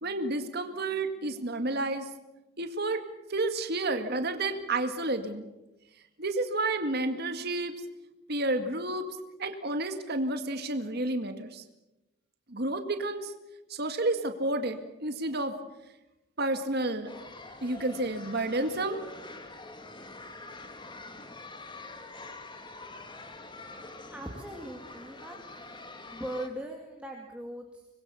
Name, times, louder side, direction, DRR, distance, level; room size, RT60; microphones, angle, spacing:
voice 1, 0.0-2.1 2.6-3.0 3.3-5.5 6.2-7.7 8.3-9.1 9.4-11.6 12.5-13.3 13.7-15.5 16.4-17.1 17.6-19.0, right 2 dB, 55° right, 7 dB, 2.1 m, -30 dB
sound 1, 17.1-26.5, left 3 dB, 25° left, 2.0 m, -45 dB
voice 2, 24.1-27.9, right 1 dB, 5° right, 0 dB, 2.4 m, -40 dB
25.5 x 21.5 x 7.1 m, 0.97 s
head